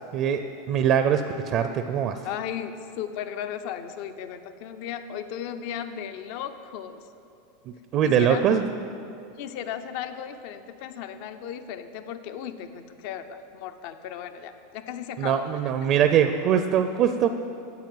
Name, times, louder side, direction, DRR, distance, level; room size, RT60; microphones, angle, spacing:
voice 1, 0.7-2.2 7.7-8.7 15.2-17.3, right 8 dB, 45° right, 8 dB, 0.5 m, -22 dB
voice 2, 2.2-7.0 8.0-8.4 9.4-15.4, left 9 dB, 60° left, 10 dB, 0.6 m, -35 dB
9.5 x 7.1 x 7.7 m, 2.7 s
supercardioid pair, 115°, 0 cm